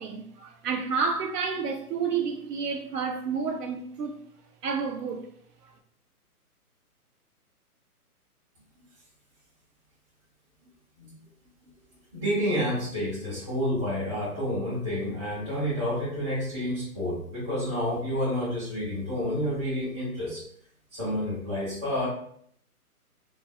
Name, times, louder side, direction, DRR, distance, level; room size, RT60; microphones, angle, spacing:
voice 1, 0.0-4.2 4.6-5.2, right 5 dB, 85° right, 0.6 m, -30 dB
voice 2, 12.1-20.4 20.9-22.1, equal, 5° right, 0.6 m, -29 dB
3.9 x 2.0 x 2.3 m
hypercardioid pair, 150°, 46 cm